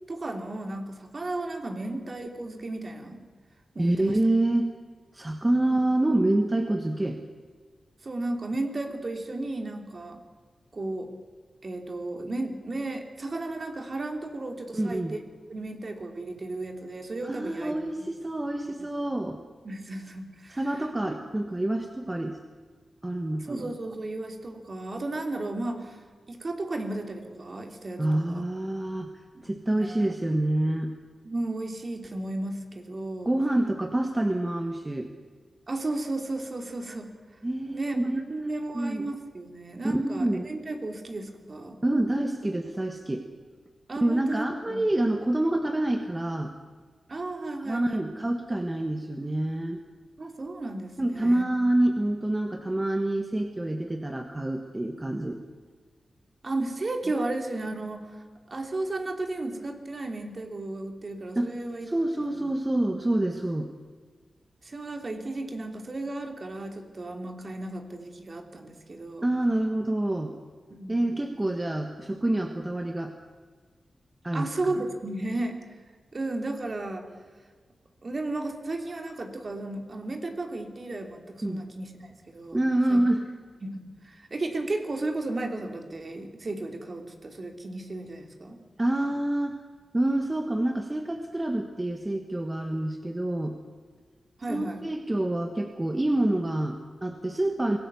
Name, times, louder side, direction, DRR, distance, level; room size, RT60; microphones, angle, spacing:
voice 1, 0.1-3.2 3.7-4.2 5.7-5.8 8.0-10.2 10.7-11.1 11.6-15.2 15.5-17.8 18.8-18.9 19.6-20.6 21.1-21.2 23.4-28.4 29.3-30.1 31.2-33.3 35.7-37.1 37.7-41.8 43.9-44.8 47.1-48.2 50.2-51.7 56.4-61.9 62.2-62.4 64.6-69.3 70.7-71.1 74.3-75.6 76.1-77.0 78.0-82.6 82.9-83.0 83.6-88.6 94.4-94.8, right 2 dB, 45° right, 4 dB, 3.1 m, -34 dB
voice 2, 3.8-4.7 5.1-7.2 14.7-15.1 17.2-19.4 20.5-22.4 23.0-23.7 28.0-29.1 29.4-30.9 33.2-35.1 37.4-38.2 38.4-39.1 39.8-40.5 41.8-43.3 44.0-46.5 47.7-49.8 51.0-55.4 61.3-61.5 61.8-63.7 69.2-70.4 70.9-73.1 74.2-74.8 81.4-81.6 82.5-83.3 88.8-89.6 89.9-93.6 94.5-97.8, right 1 dB, 20° right, 5 dB, 1.5 m, -27 dB
24.5 x 17.5 x 7.1 m, 1.5 s
wide cardioid pair, 80°, 0 cm